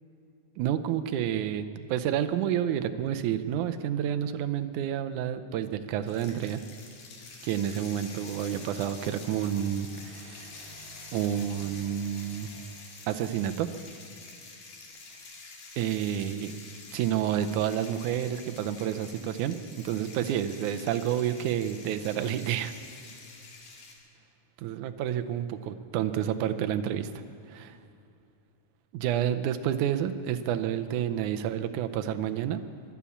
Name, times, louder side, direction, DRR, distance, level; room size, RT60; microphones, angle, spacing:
voice 1, 0.6-6.6 7.4-10.6 11.1-12.5 13.1-13.7 15.8-16.5 16.9-19.6 19.8-22.7 24.6-27.1 27.5-27.8 28.9-32.6, right 10 dB, 75° right, 9 dB, 2.0 m, -29 dB
sound 1, 6.1-23.9, left 3 dB, 80° left, 3.8 m, -47 dB
sound 2, 7.9-14.1, right 2 dB, 40° left, 3.8 m, -54 dB
23.5 x 8.5 x 7.2 m, 2.6 s
omnidirectional pair, 3.8 m